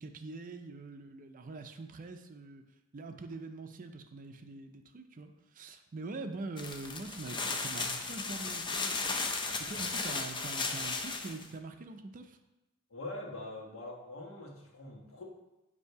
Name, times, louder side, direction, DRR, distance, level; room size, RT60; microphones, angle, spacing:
voice 1, 0.0-2.6 2.9-9.2 9.6-12.4, right 3 dB, 40° right, 7 dB, 0.5 m, -44 dB
sound 1, 6.6-11.4, left 4 dB, 25° left, 0.5 m, -35 dB
voice 2, 12.9-15.2, left 2 dB, 80° left, -1 dB, 1.2 m, -43 dB
8.1 x 2.7 x 4.6 m, 0.99 s
head